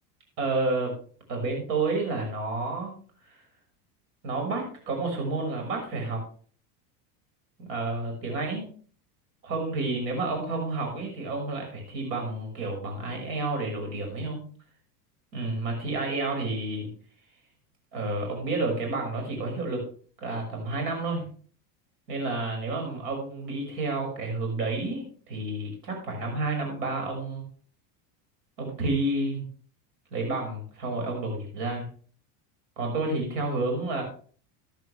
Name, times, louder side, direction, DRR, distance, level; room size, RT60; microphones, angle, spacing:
voice 1, 0.4-0.9 1.3-2.9 3.2-3.4 4.2-6.2 7.6-8.7 9.4-14.4 15.3-16.9 17.9-19.8 20.2-21.2 22.1-27.4 28.6-29.4 30.1-31.9 32.8-34.0, right 2 dB, 80° right, 2 dB, 6.1 m, -30 dB
15.5 x 10.5 x 3.4 m, 0.42 s
supercardioid pair, 115°, 48 cm